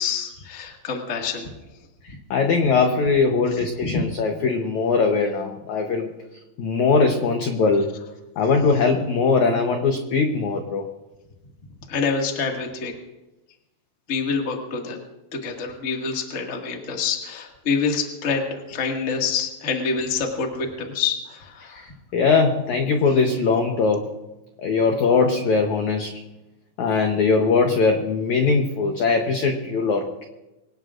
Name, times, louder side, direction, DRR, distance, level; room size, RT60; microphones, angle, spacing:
voice 1, 0.0-1.5 3.8-3.9 11.9-12.9 14.1-15.0 15.3-21.8, left 5 dB, 50° left, 1 dB, 0.9 m, -26 dB
voice 2, 2.3-6.1 6.6-7.9 8.4-10.8 21.7-21.8 22.1-24.0 24.6-26.2 26.8-30.1, left 4 dB, 85° left, 3 dB, 1.6 m, -20 dB
24.0 x 18.0 x 2.5 m, 0.99 s
omnidirectional pair, 4.9 m